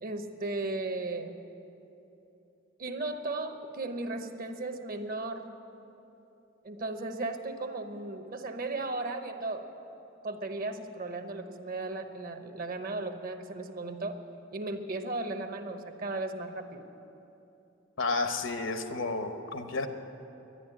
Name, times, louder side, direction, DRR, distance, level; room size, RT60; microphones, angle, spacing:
voice 1, 0.0-1.3 2.8-5.5 6.6-9.7 10.2-14.2 14.5-16.9, right 2 dB, 50° right, 7 dB, 0.9 m, -36 dB
voice 2, 18.0-19.9, left 3 dB, 80° left, 7 dB, 1.0 m, -31 dB
11.5 x 10.5 x 9.9 m, 2.9 s
head